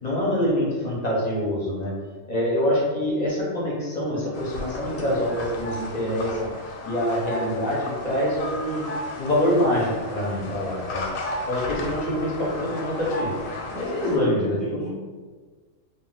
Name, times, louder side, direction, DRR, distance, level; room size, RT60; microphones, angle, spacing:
voice 1, 0.0-1.9 2.3-6.5 6.8-8.8 9.2-11.1 11.5-13.3 13.7-14.6, left 1 dB, 45° left, -5 dB, 0.5 m, -25 dB
sound 1, 4.3-14.2, left 1 dB, 90° left, 1.0 m, -34 dB
voice 2, 13.7-14.9, right 2 dB, 40° right, -7 dB, 0.3 m, -33 dB
2.3 x 2.1 x 3.9 m, 1.4 s
omnidirectional pair, 1.3 m